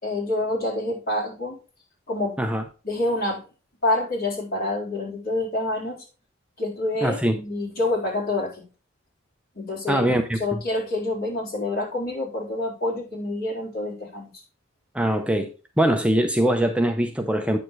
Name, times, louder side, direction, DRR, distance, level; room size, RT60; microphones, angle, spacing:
voice 1, 0.0-1.6 2.1-2.4 2.8-3.4 3.8-6.0 6.6-8.6 9.5-10.1 10.3-14.3, left 2 dB, 50° left, 4.1 m, -27 dB
voice 2, 7.0-7.4 9.9-10.6 14.9-15.5 15.8-17.6, right 1 dB, 5° right, 0.6 m, -22 dB
8.9 x 7.0 x 3.2 m
head